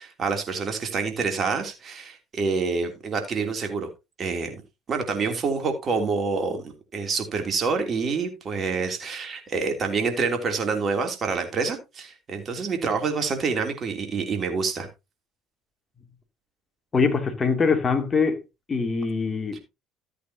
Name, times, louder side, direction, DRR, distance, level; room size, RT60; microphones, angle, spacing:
voice 1, 0.0-3.9 4.2-4.6 4.9-14.9 19.5-19.6, right 4 dB, 40° right, 3.1 m, -27 dB
voice 2, 16.9-18.4 18.7-19.6, left 4 dB, 30° left, 2.7 m, -23 dB
14.0 x 8.4 x 2.8 m
hypercardioid pair, 60°, 0 cm